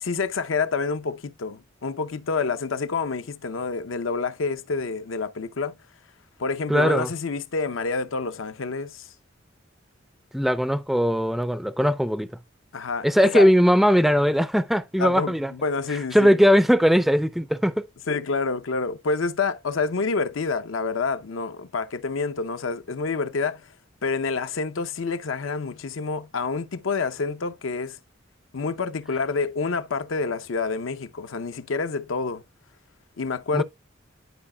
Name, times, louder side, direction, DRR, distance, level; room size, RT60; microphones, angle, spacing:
voice 1, 0.0-5.7 6.4-9.1 12.7-13.5 15.0-16.4 18.1-23.7 24.0-28.0 28.5-32.4 33.2-33.6, left 4 dB, 90° left, 0.7 m, -28 dB
voice 2, 6.7-7.1 10.3-12.3 13.0-15.5 16.1-17.9 33.5-33.6, equal, ahead, 0.3 m, -19 dB
11.0 x 4.9 x 2.2 m
head